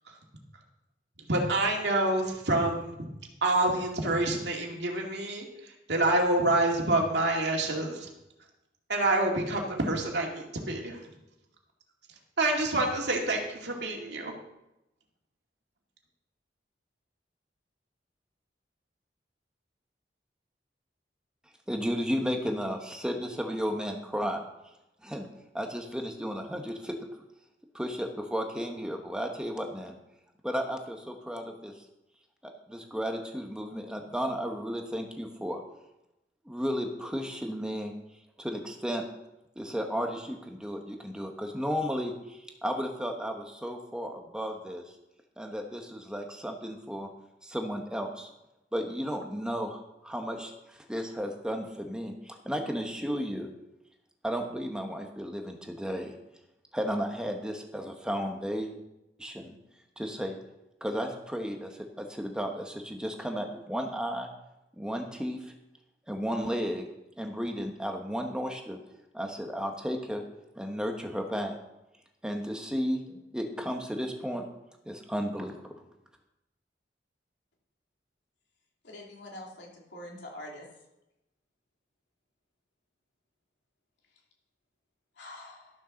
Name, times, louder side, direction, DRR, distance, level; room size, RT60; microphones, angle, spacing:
voice 1, 1.3-3.0 3.4-5.5 5.9-8.1 8.9-11.0 12.4-14.3, right 2 dB, 75° right, 0 dB, 2.3 m, -27 dB
voice 2, 21.7-24.4 25.0-25.3 25.5-27.1 27.7-29.9 30.4-31.7 32.4-35.6 36.4-37.9 38.4-39.0 39.6-44.8 45.4-47.1 47.4-48.3 48.7-53.5 54.2-56.1 56.7-58.7 59.2-59.6 60.0-60.4 60.8-64.3 64.8-65.5 66.1-66.9 67.2-68.8 69.1-70.2 70.5-71.6 72.2-74.5 74.9-75.6, equal, 5° right, 3 dB, 1.2 m, -33 dB
voice 3, 78.8-80.6 85.2-85.7, left 1 dB, 80° left, -2 dB, 3.1 m, -44 dB
12.5 x 6.6 x 6.4 m, 0.91 s
head